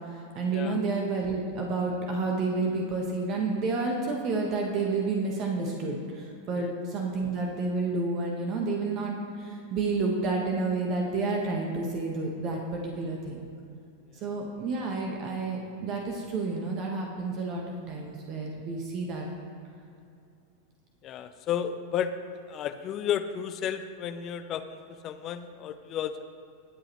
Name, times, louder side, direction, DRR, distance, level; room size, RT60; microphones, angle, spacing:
voice 1, 0.1-13.5 14.2-19.3, right 3 dB, 35° right, 0 dB, 1.4 m, -30 dB
voice 2, 21.0-22.1 22.5-26.2, left 9 dB, 35° left, 10 dB, 0.5 m, -32 dB
20.5 x 7.7 x 3.1 m, 2.5 s
figure-of-eight pair, 90°, 0 cm